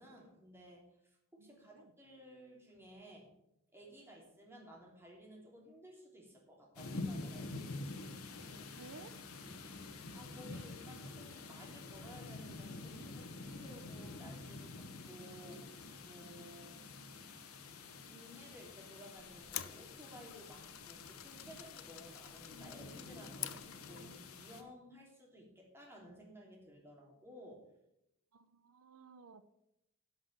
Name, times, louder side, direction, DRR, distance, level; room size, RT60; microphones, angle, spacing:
voice 1, 0.0-3.3 3.7-7.5 10.1-16.8 18.0-27.6, equal, 10° right, -2 dB, 3.1 m, -56 dB
voice 2, 1.4-1.9 8.7-9.1 28.3-29.5, right 4 dB, 85° right, 12 dB, 0.7 m, -56 dB
sound 1, 6.8-24.6, left 3 dB, 85° left, 1.4 m, -48 dB
sound 2, 19.2-24.3, left 13 dB, 65° left, 0.6 m, -48 dB
11.0 x 6.0 x 7.8 m, 0.82 s
head